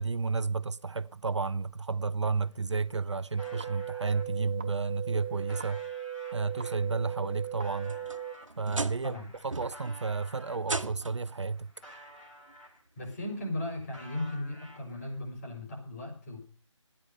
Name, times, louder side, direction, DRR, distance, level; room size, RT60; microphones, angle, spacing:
voice 1, 0.0-5.8 6.3-8.0 8.6-9.2 9.4-11.7, right 4 dB, 65° right, 0.7 m, -31 dB
sound 1, 2.7-4.2 4.9-10.7 11.1-13.1 13.3-15.2, equal, 5° left, 1.8 m, -52 dB
sound 2, 3.4-8.3, right 10 dB, 20° right, 0.6 m, -38 dB
sound 3, 7.6-9.2 9.5-10.0 10.6-11.3 12.5-12.6 13.2-13.3 14.9-15.0, right 2 dB, 85° right, 1.4 m, -37 dB
voice 2, 13.0-16.4, left 1 dB, 30° left, 5.5 m, -37 dB
14.0 x 10.0 x 6.7 m
figure-of-eight pair, 160°, 16 cm